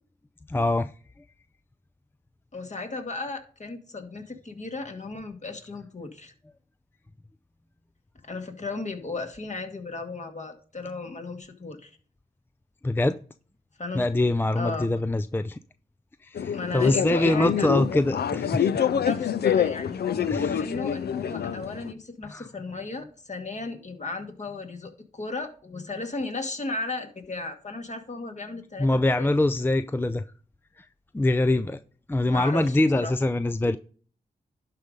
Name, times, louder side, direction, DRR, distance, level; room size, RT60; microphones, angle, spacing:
voice 1, 0.5-0.9 12.8-13.2 13.9-15.6 16.2-18.8 20.3-20.7 22.3-22.5 28.8-30.3 30.8-30.9 31.1-31.8 32.1-33.8, left 2 dB, 15° left, 0.5 m, -24 dB
voice 2, 2.5-6.3 8.2-11.9 13.8-14.0 14.6-14.9 16.5-17.7 18.8-29.3 32.3-33.1, left 3 dB, 45° left, 2.1 m, -35 dB
sound 1, 16.3-21.9, left 8 dB, 75° left, 0.6 m, -26 dB
11.5 x 4.1 x 5.1 m
cardioid pair, 45°, 17 cm